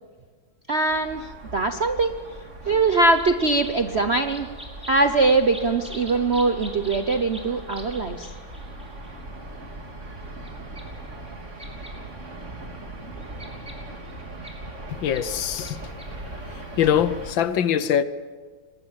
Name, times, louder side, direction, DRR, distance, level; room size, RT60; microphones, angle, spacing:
voice 1, 0.7-2.1 2.7-4.5 4.9-8.3, right 3 dB, 50° right, 0.7 m, -22 dB
sound 1, 0.9-17.3, right 2 dB, 30° right, 2.8 m, -39 dB
sound 2, 2.9-9.2 10.4-10.5 10.7-10.8 11.6-11.9 12.3-12.4 12.7-14.5 15.1-15.2 15.6-15.7 16.0-16.1, equal, ahead, 3.7 m, -43 dB
voice 2, 15.0-15.8 16.8-18.0, left 9 dB, 65° left, 1.5 m, -22 dB
23.5 x 19.5 x 8.9 m
omnidirectional pair, 2.4 m